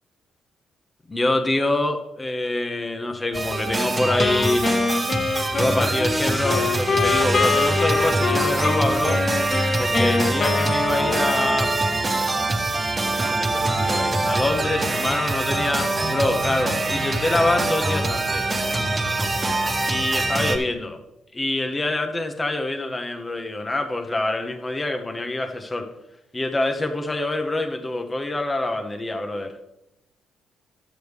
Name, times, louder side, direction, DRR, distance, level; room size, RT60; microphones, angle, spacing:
voice 1, 1.1-4.7 5.5-9.2 9.8-11.8 13.2-18.5 19.9-21.0 21.3-25.9 26.3-29.5, left 2 dB, 20° left, 5 dB, 0.8 m, -25 dB
sound 1, 3.3-20.6, right 2 dB, 25° right, 1.4 m, -24 dB
Wind instrument woodwind instrument, 4.2-12.1, left 5 dB, 40° left, 0.5 m, -25 dB
10.5 x 8.1 x 3.4 m, 0.89 s
cardioid pair, 90°, 0 cm